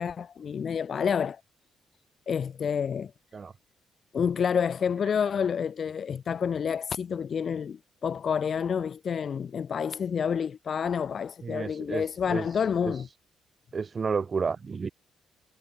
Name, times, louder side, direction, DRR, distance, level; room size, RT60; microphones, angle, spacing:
voice 1, 0.0-1.4 2.3-3.1 4.1-13.1, left 7 dB, 50° left, 0.5 m, -29 dB
voice 2, 11.4-12.0 12.3-12.4 12.8-13.0 13.7-14.9, right 5 dB, 40° right, 1.1 m, -31 dB
cardioid pair, 90°, 0 cm